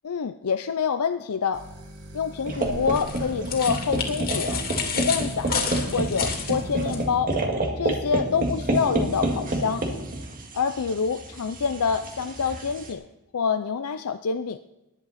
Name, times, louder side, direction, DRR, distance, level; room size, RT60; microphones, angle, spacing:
voice 1, 0.0-1.6 2.1-4.6 4.9-5.6 5.9-7.3 7.8-9.9 10.5-13.0 13.3-14.6, left 6 dB, 85° left, 9 dB, 0.5 m, -26 dB
sound 1, 1.5-7.1, equal, 85° right, 2.0 m, -42 dB
sound 2, 2.5-12.9, right 1 dB, 40° right, 1.9 m, -29 dB
sound 3, 2.9-7.0, left 6 dB, 45° left, 2.5 m, -30 dB
19.0 x 10.5 x 4.2 m, 0.96 s
head